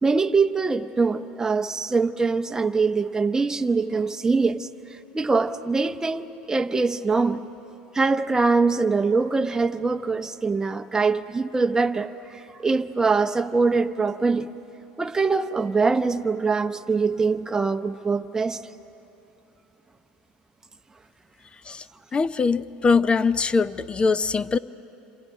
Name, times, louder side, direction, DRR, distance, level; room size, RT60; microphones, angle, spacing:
voice 1, 0.0-4.7 5.1-7.4 7.9-14.5 15.0-18.6, right 4 dB, 15° right, 0.8 m, -23 dB
voice 2, 22.1-24.6, left 4 dB, 25° left, 0.6 m, -22 dB
28.0 x 26.5 x 5.5 m
supercardioid pair, 100°, 4 cm